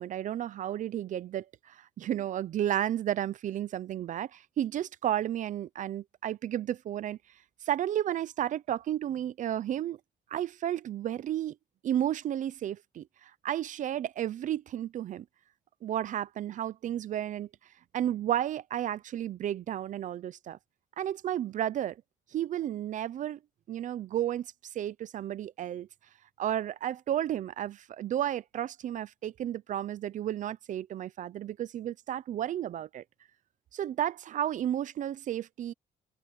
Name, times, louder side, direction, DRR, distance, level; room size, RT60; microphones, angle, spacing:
voice 1, 0.0-7.2 7.6-10.0 10.3-11.6 11.8-15.2 15.8-17.5 17.9-20.6 21.0-22.0 22.3-23.4 23.7-24.5 24.7-25.9 26.4-33.0 33.7-35.7, right 11 dB, 60° right, 0.7 m, -32 dB
open air
cardioid pair, 100°, 15 cm